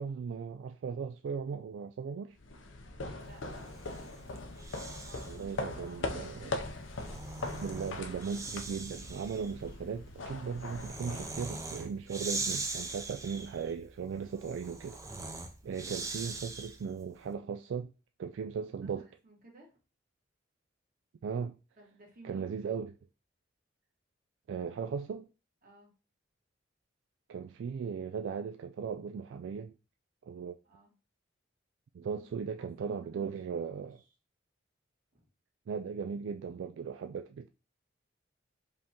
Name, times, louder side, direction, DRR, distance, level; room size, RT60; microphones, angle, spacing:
voice 1, 0.0-2.4 5.3-6.6 7.6-15.0 15.6-17.9 18.2-19.1 21.2-21.6 22.2-22.9 24.5-25.3 27.3-29.7 30.3-30.6 31.9-34.0 35.7-37.5, right 6 dB, 75° right, 0.3 m, -37 dB
sound 1, 2.4-12.0, left 2 dB, 85° left, 0.6 m, -41 dB
voice 2, 3.0-3.7 5.0-6.6 15.6-16.0 18.8-19.8 21.7-22.5 25.6-25.9 30.6-30.9 32.0-32.2 32.6-34.0 35.1-35.3, right 2 dB, 45° right, 1.7 m, -57 dB
Breathing, 3.5-5.5 6.7-17.0, right 3 dB, 15° right, 0.5 m, -41 dB
5.0 x 3.5 x 2.9 m
head